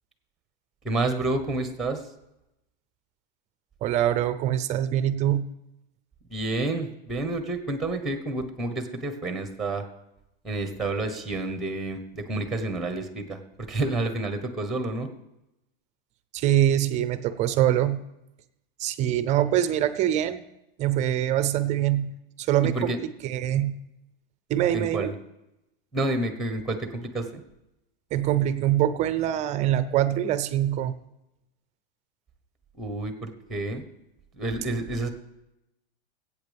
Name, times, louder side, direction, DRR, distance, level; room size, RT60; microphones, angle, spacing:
voice 1, 0.8-2.1 6.3-9.8 10.4-13.4 13.7-15.1 22.7-23.0 24.7-25.1 25.9-27.4 32.7-33.8 34.3-35.1, right 2 dB, ahead, 8 dB, 1.1 m, -29 dB
voice 2, 3.8-5.5 16.3-18.0 18.8-20.4 20.8-22.1 22.4-22.9 23.2-23.8 24.5-25.1 28.1-30.9, right 12 dB, 25° right, 13 dB, 0.5 m, -24 dB
21.5 x 8.5 x 3.5 m, 0.89 s
supercardioid pair, 155°, 29 cm